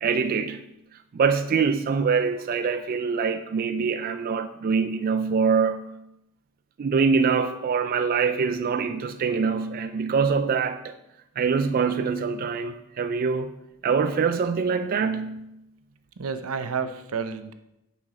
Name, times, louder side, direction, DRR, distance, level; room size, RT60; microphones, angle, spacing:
voice 1, 0.0-0.6 1.1-5.8 6.8-11.0 11.4-13.5 13.8-15.5, right 5 dB, 45° right, 9 dB, 0.3 m, -24 dB
voice 2, 16.2-17.5, right 5 dB, 85° right, 10 dB, 0.6 m, -30 dB
8.8 x 6.0 x 3.7 m, 0.88 s
head